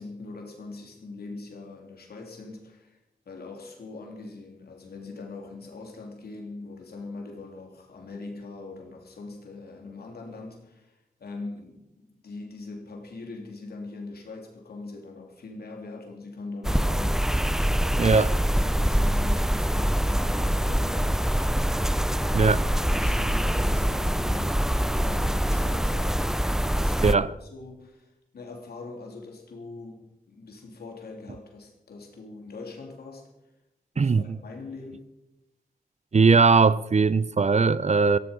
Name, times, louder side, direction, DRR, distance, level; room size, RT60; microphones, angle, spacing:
voice 1, 0.0-17.3 17.8-18.3 18.5-21.5 21.9-26.2 26.7-33.3 33.9-35.0, left 3 dB, 85° left, 3.5 m, -42 dB
sound 1, 16.6-27.1, equal, 5° right, 0.5 m, -24 dB
voice 2, 18.0-18.3 22.3-22.6 27.0-27.3 34.0-34.4 36.1-38.2, right 4 dB, 45° right, 0.7 m, -20 dB
16.0 x 15.5 x 5.4 m
cardioid pair, 50°, 16 cm